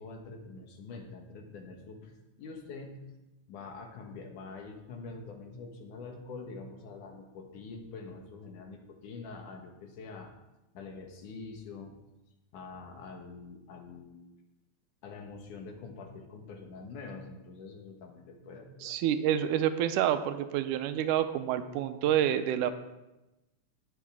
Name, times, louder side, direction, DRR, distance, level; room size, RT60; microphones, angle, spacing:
voice 1, 0.0-3.0 3.5-10.3 10.7-12.0 12.5-14.2 15.0-19.0, left 4 dB, 75° left, 3 dB, 3.0 m, -45 dB
voice 2, 18.8-22.7, right 10 dB, 85° right, 10 dB, 2.1 m, -28 dB
19.0 x 7.4 x 3.6 m, 0.99 s
omnidirectional pair, 3.7 m